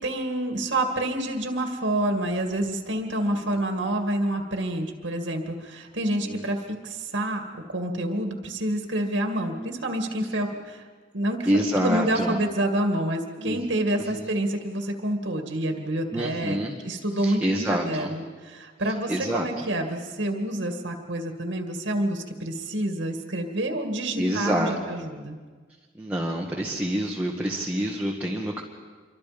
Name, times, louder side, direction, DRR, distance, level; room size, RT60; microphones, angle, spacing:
voice 1, 0.0-7.5 7.7-10.8 11.1-11.5 11.7-16.6 16.8-25.4, right 1 dB, 80° right, 4 dB, 2.2 m, -28 dB
voice 2, 11.5-12.3 13.4-13.6 14.1-14.3 16.1-16.8 17.2-18.1 19.1-19.7 24.2-24.8 26.0-28.6, equal, 10° right, -2 dB, 1.6 m, -27 dB
27.0 x 24.0 x 5.3 m, 1.5 s
head